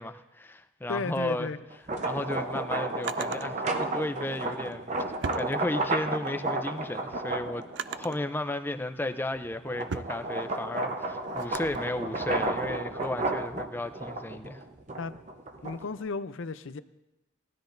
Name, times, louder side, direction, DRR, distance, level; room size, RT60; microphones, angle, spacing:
voice 1, 0.0-1.5 2.0-4.9 5.3-7.7 8.0-14.6, left 1 dB, 10° left, 9 dB, 0.4 m, -34 dB
voice 2, 0.9-1.6 15.0-15.1 15.6-16.8, left 4 dB, 75° left, 13 dB, 0.5 m, -34 dB
sound 1, 1.7-8.3 8.8-16.0, right 2 dB, 35° right, 0.8 m, -32 dB
Drawer open or close, 1.8-3.5 4.5-6.2 6.6-8.3 8.9-11.8, right 6 dB, 60° right, 0.4 m, -41 dB
19.0 x 12.5 x 2.6 m, 0.93 s
head